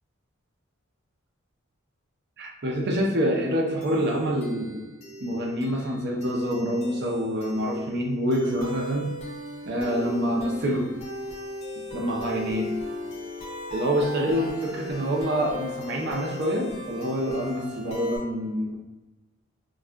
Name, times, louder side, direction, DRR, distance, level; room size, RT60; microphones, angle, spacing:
voice 1, 2.4-4.8 5.2-9.1 9.7-10.9 11.9-12.7 13.7-18.8, equal, 55° right, -1 dB, 0.5 m, -26 dB
sound 1, 3.8-18.2, left 1 dB, 30° left, 0.6 m, -38 dB
3.6 x 2.3 x 2.2 m, 1.1 s
head